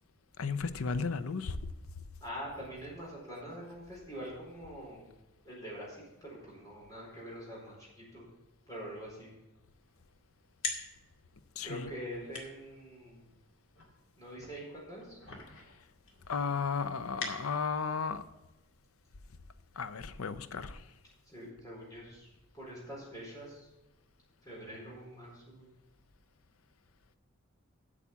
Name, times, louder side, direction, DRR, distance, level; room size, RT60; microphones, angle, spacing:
voice 1, 0.4-1.6 11.6-11.7 16.3-18.2 19.8-20.7, left 5 dB, 85° left, 11 dB, 0.6 m, -34 dB
voice 2, 2.2-5.1 5.4-7.9 8.1-8.2 8.7-9.3 11.6-13.3 14.2-15.2 21.3-22.3 22.5-23.7 24.4-25.7, equal, 15° left, -5 dB, 4.5 m, -44 dB
sound 1, 9.7-17.9, left 3 dB, 65° left, 2.2 m, -46 dB
8.4 x 7.3 x 7.1 m, 1.0 s
head